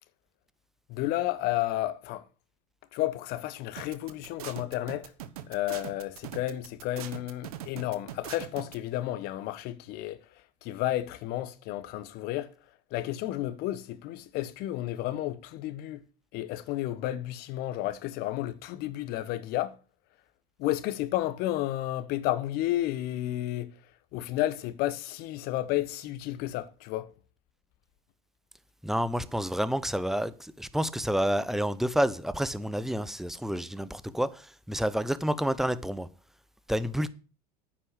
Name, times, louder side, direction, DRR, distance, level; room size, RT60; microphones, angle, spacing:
voice 1, 0.9-2.2 2.9-5.1 5.5-12.5 12.9-16.0 16.3-19.7 20.6-23.8 24.1-27.1, left 14 dB, 55° left, 1.3 m, -32 dB
sound 1, 3.8-8.7, right 11 dB, 70° right, 1.3 m, -41 dB
voice 2, 28.8-36.1 36.7-37.1, equal, ahead, 0.8 m, -29 dB
9.7 x 6.0 x 8.2 m
hypercardioid pair, 85°, 19 cm